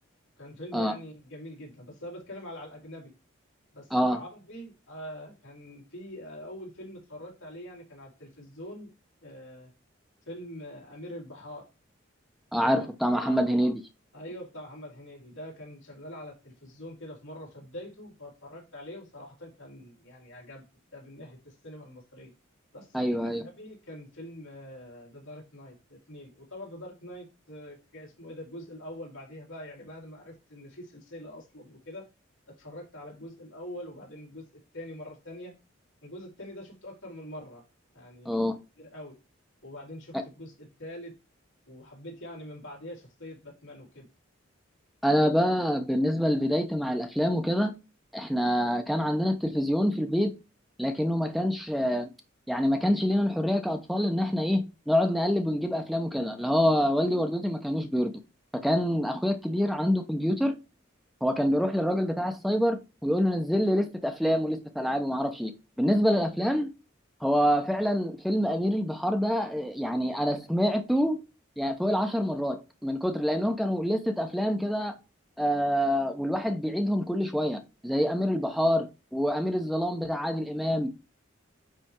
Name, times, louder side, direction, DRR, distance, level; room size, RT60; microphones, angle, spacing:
voice 1, 0.4-3.1 3.7-8.9 9.2-9.7 10.3-11.7 12.6-13.6 14.1-20.6 20.9-22.3 22.7-32.1 32.6-34.5 34.7-35.5 36.0-37.6 37.9-38.3 38.8-39.2 39.6-41.1 41.7-44.1 72.4-72.5 78.4-78.6, left 1 dB, 85° left, 4.5 m, -44 dB
voice 2, 12.5-13.7 22.9-23.4 38.2-38.5 45.0-47.7 48.1-50.3 50.8-52.1 52.5-58.1 58.6-60.5 61.2-65.5 65.8-66.7 67.2-71.2 71.6-74.9 75.4-81.0, equal, ahead, 0.8 m, -26 dB
9.4 x 3.5 x 4.5 m
head